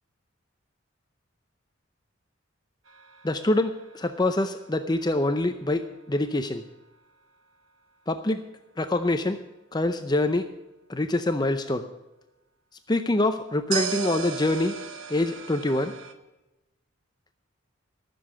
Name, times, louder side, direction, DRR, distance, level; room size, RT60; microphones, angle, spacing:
sound 1, 2.9-5.9 13.7-16.1, right 7 dB, 70° right, 1.2 m, -36 dB
voice 1, 3.2-6.6 8.1-8.4 8.8-9.4 9.7-10.5 10.9-11.8 12.9-14.7 15.1-15.9, left 2 dB, 20° left, 8 dB, 0.5 m, -25 dB
14.0 x 7.0 x 8.6 m, 1.0 s
head